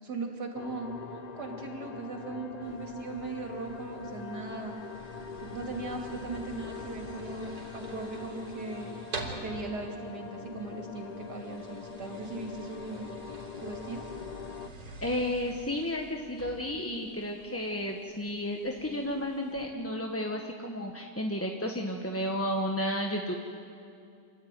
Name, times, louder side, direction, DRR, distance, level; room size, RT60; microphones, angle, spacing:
voice 1, 0.0-4.7 5.4-8.9 9.4-13.1 13.6-14.0, right 3 dB, 80° right, 1 dB, 3.4 m, -38 dB
sound 1, 0.5-14.7, left 6 dB, 80° left, 0.3 m, -43 dB
sound 2, 2.6-19.6, right 2 dB, 60° right, 4.2 m, -48 dB
voice 2, 15.0-23.3, left 1 dB, 10° left, 1 dB, 0.9 m, -32 dB
28.0 x 13.0 x 9.3 m, 2.5 s
omnidirectional pair, 1.7 m